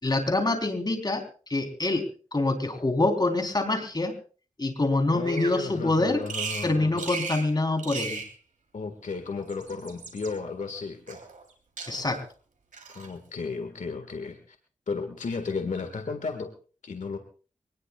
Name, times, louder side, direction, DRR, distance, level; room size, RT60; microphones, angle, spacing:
voice 1, 0.0-2.0 2.3-4.1 4.6-6.2 6.6-8.2 11.9-12.2, left 2 dB, 30° left, 4 dB, 3.7 m, -25 dB
voice 2, 5.1-7.1 8.7-11.2 12.9-14.5 14.9-16.5 16.8-17.2, left 4 dB, 70° left, 6 dB, 1.8 m, -34 dB
Bird vocalization bird call bird song, 5.2-5.6 6.3-6.7 7.0-7.5 7.8-8.3 9.3-10.3 11.1-11.5 11.8-12.2 12.7-13.1, right 4 dB, 80° right, 3.5 m, -36 dB
24.5 x 19.5 x 2.4 m, 0.38 s
wide cardioid pair, 75°, 13 cm